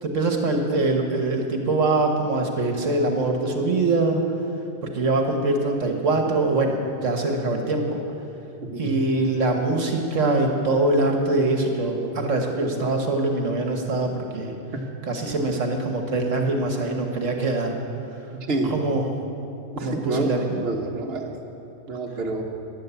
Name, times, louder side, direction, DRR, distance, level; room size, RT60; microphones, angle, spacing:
voice 1, 0.0-4.2 4.9-8.0 8.8-14.6 15.1-17.8 18.7-19.1 19.8-20.6, right 2 dB, 70° right, 3 dB, 1.6 m, -23 dB
voice 2, 18.5-18.9 19.7-21.3 21.9-22.4, right 3 dB, 50° right, 0 dB, 1.5 m, -28 dB
13.0 x 11.0 x 8.2 m, 2.8 s
omnidirectional pair, 1.4 m